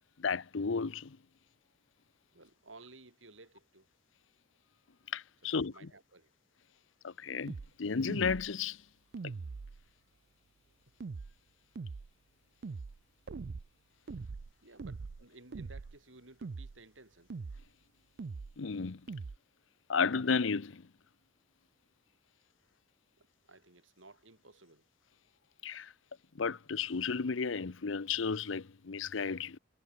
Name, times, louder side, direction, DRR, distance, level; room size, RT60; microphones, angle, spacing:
voice 1, 0.2-1.2 5.1-5.9 7.0-8.8 9.2-9.3 18.6-19.0 19.9-20.9 25.6-25.9 26.3-29.6, left 5 dB, 85° left, 0.7 m, -33 dB
voice 2, 2.3-3.9 5.5-6.3 10.7-10.8 14.6-17.3 23.2-24.8, right 2 dB, 80° right, 6.3 m, -56 dB
sound 1, 7.5-7.7 8.1-8.5 9.1-9.8 11.0-11.3 11.8-12.1 12.6-13.0 13.3-13.7 14.1-14.5 14.8-15.2 15.5-16.0 16.4-16.8 17.3-17.7 18.2-18.5 19.1-19.4, right 4 dB, 60° right, 0.5 m, -42 dB
head